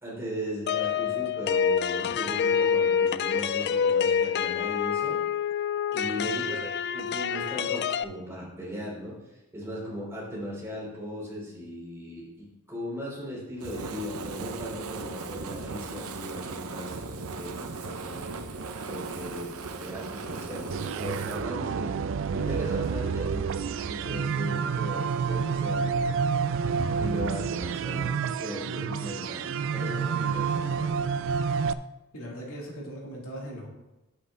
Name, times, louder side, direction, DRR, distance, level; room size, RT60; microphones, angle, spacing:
voice 1, 0.0-5.2 5.9-9.2 9.5-18.3 18.9-21.9 22.3-25.9 27.0-31.1, equal, 10° right, -6 dB, 3.7 m, -38 dB
sound 1, 0.7-8.0, left 7 dB, 50° left, 0.3 m, -27 dB
voice 2, 6.1-6.7 32.1-33.7, equal, 70° left, -3 dB, 2.4 m, -40 dB
Fire, 13.6-21.4, right 4 dB, 85° right, 0.7 m, -37 dB
sound 2, 20.7-31.7, right 6 dB, 60° right, 0.4 m, -29 dB
9.4 x 8.1 x 3.7 m, 0.97 s
head